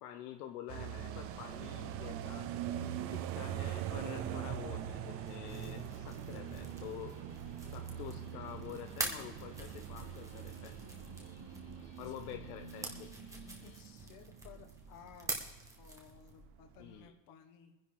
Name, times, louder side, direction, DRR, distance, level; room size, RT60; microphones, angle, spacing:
voice 1, 0.0-2.5 3.1-7.2 7.7-10.7 12.0-13.1 16.8-17.1, left 11 dB, 65° left, 6 dB, 1.0 m, -48 dB
sound 1, 0.7-15.8 16.1-16.2 16.5-17.0, right 10 dB, 30° right, 0.4 m, -43 dB
sound 2, 1.0-13.8, right 1 dB, 25° left, 2.6 m, -56 dB
sound 3, 5.3-16.4, right 2 dB, 5° right, 1.3 m, -46 dB
voice 2, 13.6-15.3 15.8-17.8, left 8 dB, 40° left, 5 dB, 1.5 m, -57 dB
21.5 x 10.5 x 3.5 m, 1.1 s
supercardioid pair, 150°, 49 cm